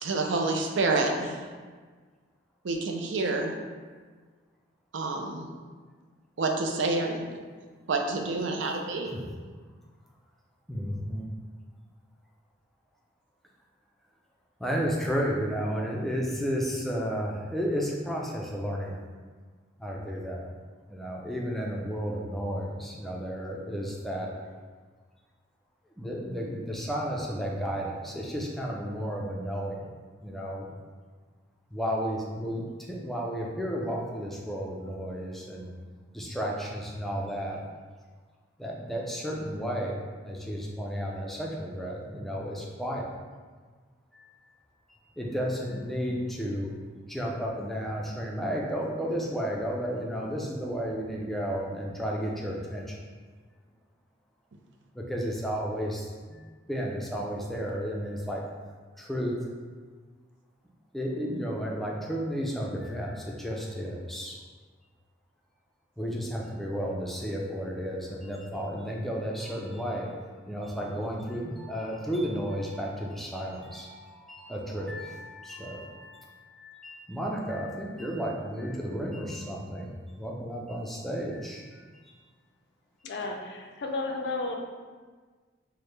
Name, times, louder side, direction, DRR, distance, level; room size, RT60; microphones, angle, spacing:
voice 1, 0.0-1.4 2.6-3.5 4.9-5.5 6.4-7.3 7.9-9.1, right 3 dB, 80° right, 2 dB, 0.5 m, -28 dB
voice 2, 10.7-11.3 14.6-19.0 19.8-20.5 20.9-24.3 26.0-29.8 30.2-30.7 31.7-35.7 36.1-37.6 38.6-43.1 44.1-44.4 45.2-46.7 47.1-52.8 54.9-56.4 56.7-58.4 59.0-59.3 60.9-64.4 66.0-70.1 70.5-81.8, equal, ahead, -2 dB, 0.4 m, -33 dB
voice 3, 83.0-84.5, left 3 dB, 60° left, 2 dB, 0.4 m, -33 dB
4.7 x 2.1 x 3.2 m, 1.5 s
head